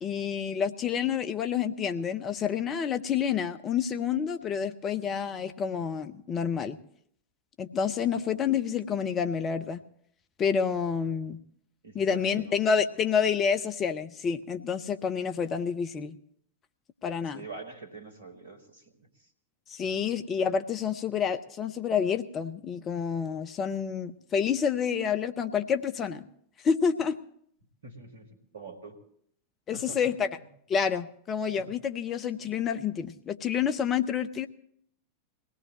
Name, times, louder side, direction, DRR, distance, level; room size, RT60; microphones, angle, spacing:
voice 1, 0.0-6.8 7.6-9.8 10.4-11.4 11.9-16.2 17.0-17.4 19.7-26.2 26.6-27.2 29.7-30.3 30.7-34.5, left 7 dB, 25° left, 9 dB, 0.8 m, -28 dB
voice 2, 11.8-13.0 17.3-19.3 19.8-19.9 27.8-29.0 29.7-30.1 30.4-30.5 31.5-31.8, right 4 dB, 70° right, 6 dB, 2.2 m, -46 dB
22.0 x 17.5 x 3.0 m, 0.66 s
figure-of-eight pair, 90°, 0 cm